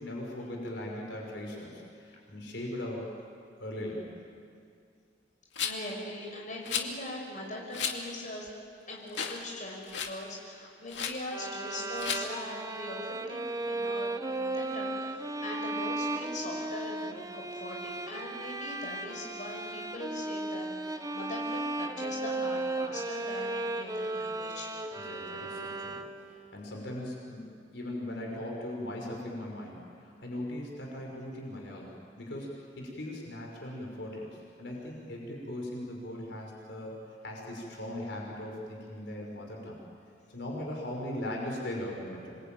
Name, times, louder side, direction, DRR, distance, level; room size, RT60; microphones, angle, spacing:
voice 1, 0.0-3.1 3.6-4.1 18.0-18.1 24.9-39.8 40.3-42.4, left 1 dB, 75° left, -1 dB, 5.6 m, -39 dB
Rattle, 5.6-5.9 6.7-6.9 7.7-8.0 8.5-8.6 9.1-9.4 9.7-10.2 10.9-11.2 12.0-12.2, left 7 dB, 90° left, 2.3 m, -33 dB
voice 2, 5.6-8.5 8.9-24.8, left 1 dB, 45° left, -1 dB, 5.9 m, -41 dB
sound 1, 11.3-26.4, right 2 dB, 20° right, 1.1 m, -35 dB
27.0 x 23.0 x 9.2 m, 2.3 s
head